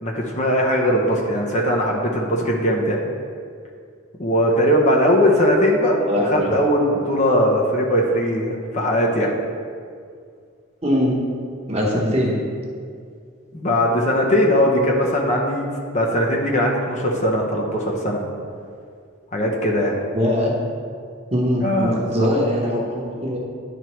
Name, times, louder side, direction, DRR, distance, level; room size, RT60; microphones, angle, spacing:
voice 1, 0.0-3.0 4.2-9.3 13.5-15.7 15.9-18.2 19.3-19.9 21.6-22.3, equal, 35° left, -1 dB, 0.7 m, -20 dB
voice 2, 6.1-6.5 10.8-11.1 11.7-12.4 20.1-20.5 21.3-23.4, left 1 dB, 30° right, -3 dB, 1.0 m, -21 dB
11.0 x 4.4 x 3.1 m, 2.2 s
head